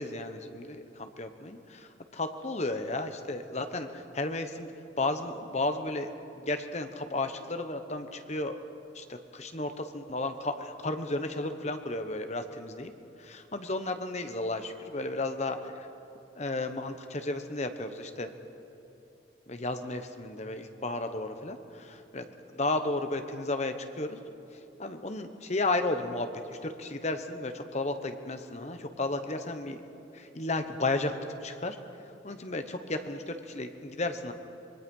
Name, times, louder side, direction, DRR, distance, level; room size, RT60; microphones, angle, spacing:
voice 1, 0.0-4.7 5.0-6.1 6.4-8.6 8.9-12.9 13.2-15.9 16.3-18.3 19.5-22.3 22.5-24.2 24.8-29.8 30.1-31.2 31.4-31.8 32.2-34.3, left 2 dB, 35° left, 8 dB, 1.1 m, -33 dB
25.5 x 22.0 x 5.5 m, 3.0 s
head